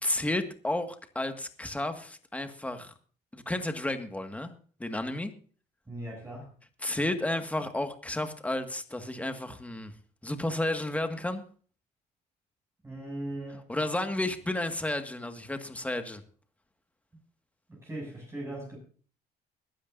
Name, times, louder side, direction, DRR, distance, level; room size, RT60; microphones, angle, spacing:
voice 1, 0.0-2.9 3.3-4.5 4.8-5.3 6.8-9.9 10.2-11.4 13.7-16.2, left 1 dB, 10° left, 7 dB, 1.8 m, -32 dB
voice 2, 5.9-6.5 12.8-13.6 17.7-18.8, right 1 dB, 15° right, -2 dB, 7.5 m, -39 dB
21.5 x 12.0 x 2.7 m, 0.42 s
cardioid pair, 110°, 17 cm